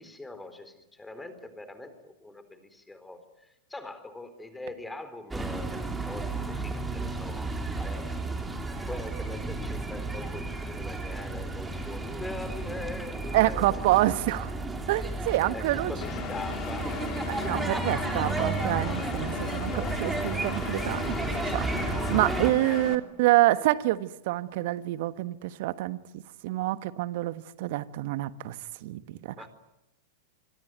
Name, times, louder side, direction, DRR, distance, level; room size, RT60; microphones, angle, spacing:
voice 1, 0.0-7.5 7.8-13.8 15.5-17.0 22.6-22.8 29.4-29.5, left 2 dB, 10° left, 4.1 m, -42 dB
sound 1, 5.3-22.5, right 3 dB, 10° right, 4.3 m, -33 dB
voice 2, 13.3-14.5 14.9-15.9 17.3-28.6 28.8-29.3, right 17 dB, 55° right, 1.4 m, -27 dB
Engine, 16.0-23.0, left 9 dB, 40° left, 3.0 m, -37 dB
26.0 x 24.0 x 9.5 m
figure-of-eight pair, 95°, 0 cm